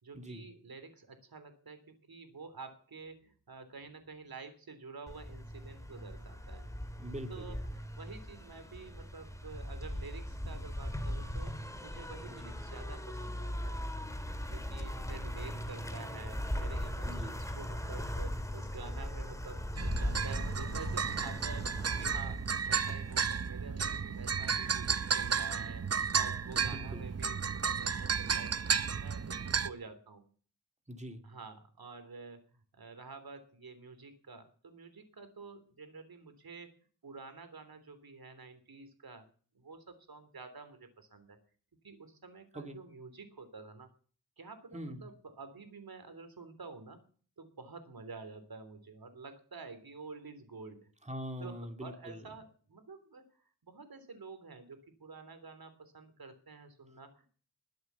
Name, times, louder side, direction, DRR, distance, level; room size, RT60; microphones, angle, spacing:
voice 1, 0.0-6.6 7.3-13.9 14.4-25.8 26.1-30.2 31.2-32.4 32.7-36.7 37.0-39.3 39.5-41.4 41.8-43.9 44.4-47.0 47.4-50.9 51.4-53.3 53.6-57.3, right 4 dB, 70° right, 10 dB, 3.4 m, -49 dB
sound 1, 5.1-23.2, equal, 10° left, 2.2 m, -39 dB
voice 2, 7.0-7.6 12.3-12.6 17.0-17.4 26.6-27.0 30.9-31.2 42.5-42.8 44.7-45.1 51.0-52.2, equal, 20° right, 6 dB, 2.4 m, -43 dB
sound 2, 19.8-29.7, right 6 dB, 40° right, 0.8 m, -33 dB
21.0 x 7.9 x 7.0 m, 0.43 s
wide cardioid pair, 80°, 37 cm